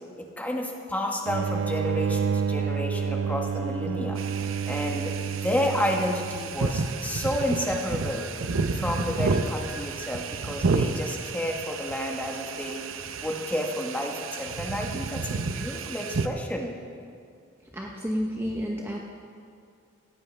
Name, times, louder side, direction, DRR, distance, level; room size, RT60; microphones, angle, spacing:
voice 1, 0.2-4.2 4.7-8.3 8.7-12.9 13.2-16.8, left 1 dB, 10° left, 1 dB, 1.3 m, -30 dB
sound 1, 1.3-6.6, right 6 dB, 65° right, 0.3 m, -29 dB
sound 2, 4.2-16.3, right 4 dB, 85° right, 0.7 m, -31 dB
voice 2, 17.7-19.0, equal, 10° right, -1 dB, 0.9 m, -30 dB
18.0 x 15.0 x 3.4 m, 2.3 s
head